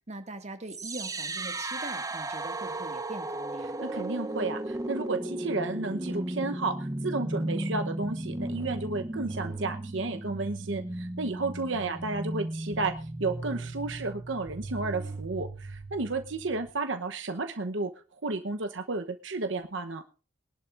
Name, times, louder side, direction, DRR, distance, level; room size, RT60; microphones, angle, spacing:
voice 1, 0.1-3.8, right 2 dB, 35° right, 6 dB, 2.1 m, -42 dB
sound 1, 0.7-16.7, right 1 dB, 20° right, 0.8 m, -35 dB
voice 2, 3.8-17.9 18.2-20.0, right 3 dB, 70° right, 7 dB, 1.0 m, -32 dB
22.0 x 11.5 x 2.6 m, 0.36 s
head